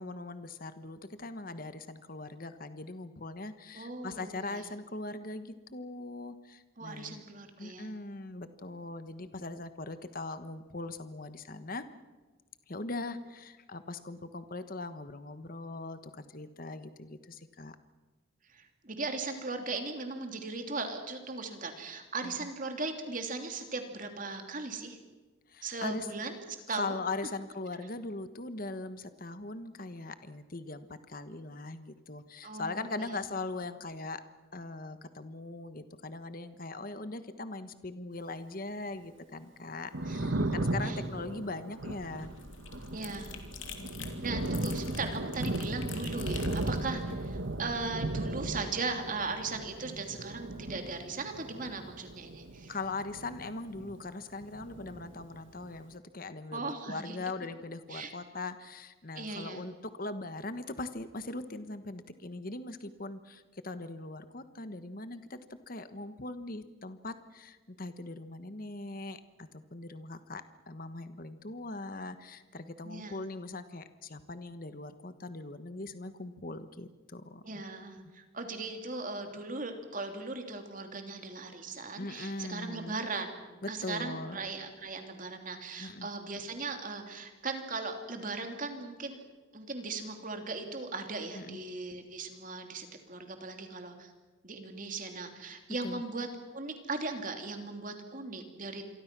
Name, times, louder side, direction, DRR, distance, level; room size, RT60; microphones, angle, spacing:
voice 1, 0.0-7.2 7.6-11.9 12.7-17.8 22.2-22.5 25.5-26.1 26.7-34.2 34.5-42.3 43.8-44.4 46.9-47.2 52.7-65.4 65.7-77.6 82.0-83.0 83.6-84.4 85.8-86.1 91.3-91.6 95.8-96.0, left 2 dB, 45° left, 11 dB, 1.3 m, -40 dB
voice 2, 3.7-4.7 6.8-7.9 18.5-25.0 25.6-27.0 32.4-33.2 40.0-41.0 42.9-43.3 44.0-52.7 56.5-57.2 57.9-58.1 59.1-59.6 72.8-73.2 77.4-83.4 83.7-89.2 89.5-94.1 94.4-96.3 96.5-98.8, right 3 dB, 40° right, 5 dB, 3.0 m, -38 dB
Thunder, 39.7-54.2 54.4-55.7, right 1 dB, 70° right, 1.5 m, -36 dB
sound 1, 41.8-47.9, left 5 dB, 75° left, 3.0 m, -47 dB
28.0 x 23.5 x 6.1 m, 1.3 s
head